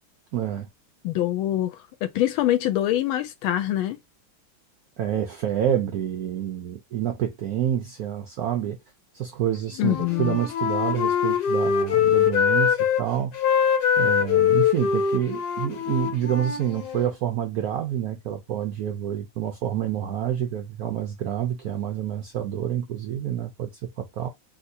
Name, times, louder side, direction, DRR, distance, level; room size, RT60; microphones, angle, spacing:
voice 1, 0.3-0.7 5.0-8.8 9.1-13.4 14.0-24.3, right 10 dB, 85° right, 0.8 m, -28 dB
voice 2, 1.0-4.0 9.8-10.4, left 13 dB, 80° left, 1.4 m, -24 dB
Wind instrument woodwind instrument, 9.8-13.0 13.3-17.1, left 8 dB, 60° left, 1.2 m, -23 dB
3.4 x 2.8 x 2.7 m
omnidirectional pair, 2.2 m